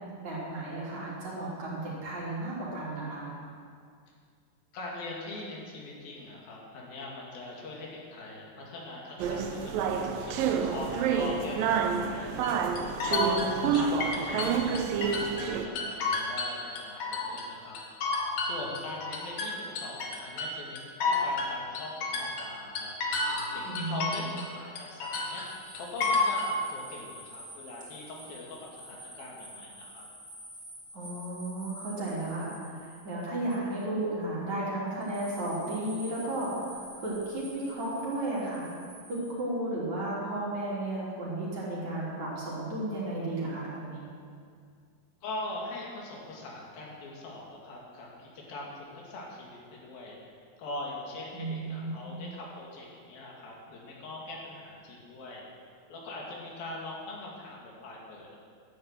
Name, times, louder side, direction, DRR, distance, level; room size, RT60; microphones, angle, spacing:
voice 1, 0.2-3.3 13.6-13.7 23.6-24.2 30.9-38.7 39.1-44.1 51.3-52.1, right 1 dB, 50° right, -7 dB, 4.6 m, -34 dB
voice 2, 4.7-17.8 18.4-22.9 23.5-25.4 25.8-30.1 45.2-55.4 55.9-58.4, left 1 dB, 80° left, -3 dB, 4.1 m, -41 dB
sound 1, 9.2-15.7, right 6 dB, 80° right, 2.5 m, -29 dB
sound 2, 12.4-15.5 15.8-17.5 17.7-24.5 24.8-26.5, left 3 dB, 60° left, 2.8 m, -31 dB
sound 3, 24.9-34.1 35.0-39.3, right 1 dB, ahead, 3.5 m, -49 dB
12.0 x 9.9 x 7.8 m, 2.2 s
omnidirectional pair, 4.1 m